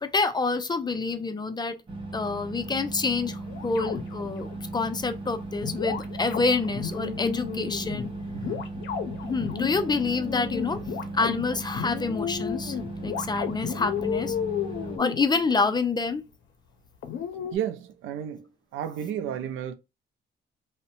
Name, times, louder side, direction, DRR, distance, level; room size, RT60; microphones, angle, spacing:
voice 1, 0.0-1.8 2.1-8.1 9.2-10.8 11.1-12.8 13.0-14.4 15.0-16.2, left 4 dB, 20° left, 0.4 m, -27 dB
sound 1, 1.9-15.0, right 2 dB, 25° right, 0.9 m, -37 dB
sound 2, 3.5-4.6 5.6-15.8 17.0-17.6, left 8 dB, 70° left, 0.6 m, -33 dB
voice 2, 8.3-8.6 17.5-18.4 18.7-19.7, right 9 dB, 90° right, 0.4 m, -32 dB
2.6 x 2.1 x 2.5 m
cardioid pair, 90°, 20 cm